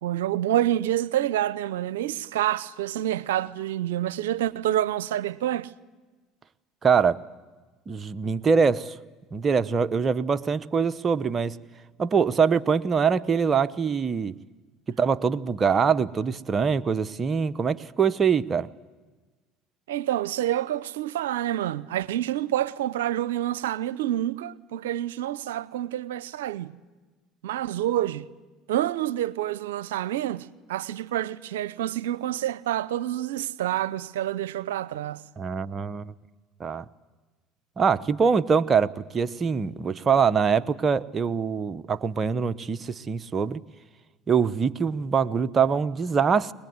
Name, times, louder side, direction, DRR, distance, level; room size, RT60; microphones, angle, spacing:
voice 1, 0.0-5.7 19.9-26.7 27.4-28.3 28.7-35.2, right 12 dB, 85° right, 0.7 m, -28 dB
voice 2, 6.8-7.3 7.9-9.0 9.3-11.6 12.0-14.4 14.9-18.7 35.4-36.1 36.6-36.8 37.8-43.6 44.3-46.5, right 6 dB, 35° right, 0.9 m, -23 dB
22.5 x 20.5 x 9.6 m
hypercardioid pair, 75°, 0 cm